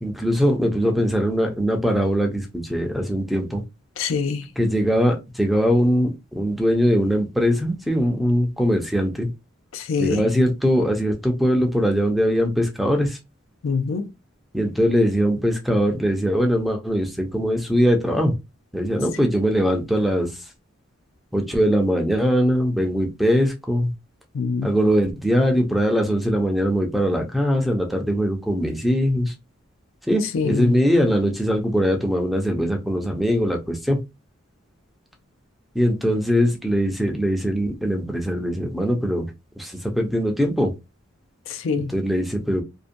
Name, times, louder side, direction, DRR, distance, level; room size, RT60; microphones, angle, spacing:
voice 1, 0.0-3.6 4.6-6.1 6.3-9.3 10.0-13.2 14.5-18.3 18.7-20.4 21.3-23.9 24.6-29.3 30.1-34.0 35.7-39.3 39.6-40.7 41.9-42.6, equal, ahead, 0.4 m, -21 dB
voice 2, 4.0-4.5 9.7-10.2 13.6-14.1 24.3-24.7 30.2-30.8 41.5-41.9, left 5 dB, 75° left, 0.4 m, -25 dB
2.6 x 2.1 x 2.5 m
head